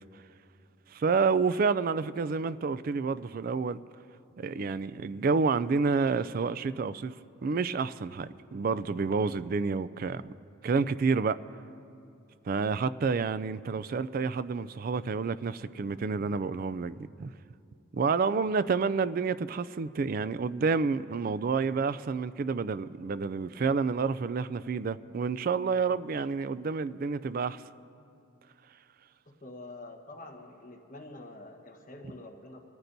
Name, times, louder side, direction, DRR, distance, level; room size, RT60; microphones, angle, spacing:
voice 1, 0.9-3.8 4.4-7.1 7.4-10.3 10.6-11.4 12.5-17.3 17.9-27.6, right 4 dB, 40° right, 0.3 m, -29 dB
voice 2, 29.3-32.6, left 2 dB, 40° left, 1.2 m, -46 dB
25.0 x 14.0 x 2.7 m
head